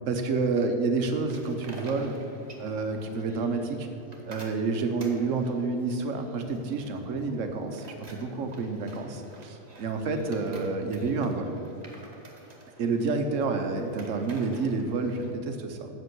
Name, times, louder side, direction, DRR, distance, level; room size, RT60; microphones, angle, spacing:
voice 1, 0.1-2.2 2.6-3.9 4.3-7.9 8.1-11.6 12.8-15.9, right 3 dB, 55° right, 6 dB, 1.1 m, -29 dB
sound 1, 1.3-15.3, right 2 dB, 30° right, 1.1 m, -50 dB
8.0 x 7.2 x 6.1 m, 2.7 s
omnidirectional pair, 1.8 m